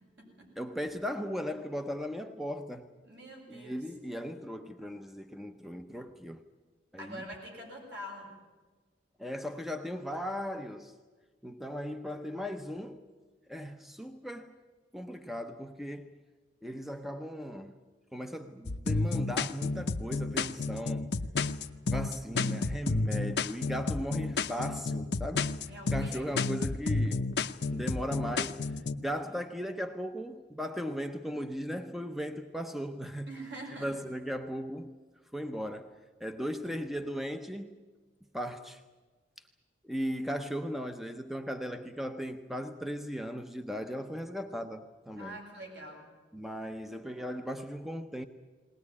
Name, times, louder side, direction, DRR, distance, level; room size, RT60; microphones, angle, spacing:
voice 1, 0.6-2.9 3.5-6.4 6.9-7.2 9.2-11.0 11.4-13.1 13.5-14.6 14.9-16.2 16.6-17.8 18.1-21.2 21.9-25.6 25.9-27.4 27.7-33.3 33.8-35.0 35.3-37.8 38.3-38.8 39.8-45.4 46.3-48.3, equal, ahead, 0.7 m, -37 dB
voice 2, 3.0-3.8 7.0-8.3 25.7-26.3 33.3-33.9 45.2-46.0, equal, 65° right, 7.7 m, -44 dB
sound 1, 18.7-29.0, left 3 dB, 65° left, 0.7 m, -31 dB
20.0 x 19.5 x 9.8 m
head